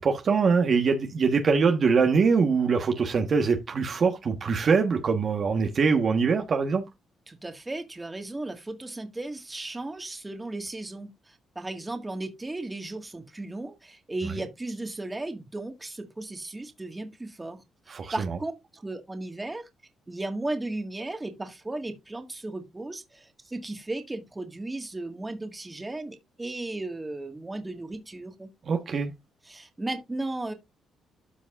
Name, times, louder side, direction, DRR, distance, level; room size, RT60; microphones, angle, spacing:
voice 1, 0.0-6.8 17.9-18.1 28.7-29.1, right 5 dB, 50° right, 1.3 m, -23 dB
voice 2, 7.3-17.6 18.1-19.7 20.1-28.5 29.4-30.5, right 2 dB, 15° right, 1.8 m, -35 dB
13.0 x 5.2 x 2.5 m
cardioid pair, 90°, 0 cm